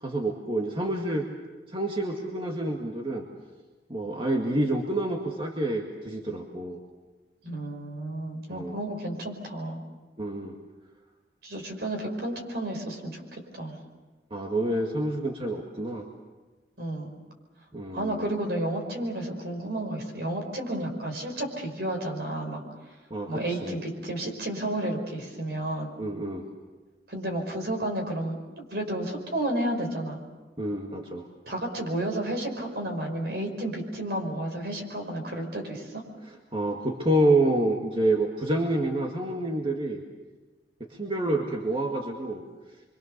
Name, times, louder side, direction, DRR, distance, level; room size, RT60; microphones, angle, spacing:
voice 1, 0.0-1.2 1.7-3.2 3.9-6.8 8.5-8.8 10.2-10.6 14.3-16.1 17.7-18.4 23.1-23.7 26.0-26.4 30.6-31.2 36.5-40.0 41.0-42.4, right 1 dB, 30° right, 0 dB, 2.0 m, -28 dB
voice 2, 7.4-9.8 11.4-13.8 16.8-17.1 17.9-22.6 23.3-25.9 27.1-30.2 31.5-36.0, right 1 dB, 60° right, 3 dB, 5.4 m, -32 dB
28.0 x 24.5 x 6.8 m, 1.3 s
head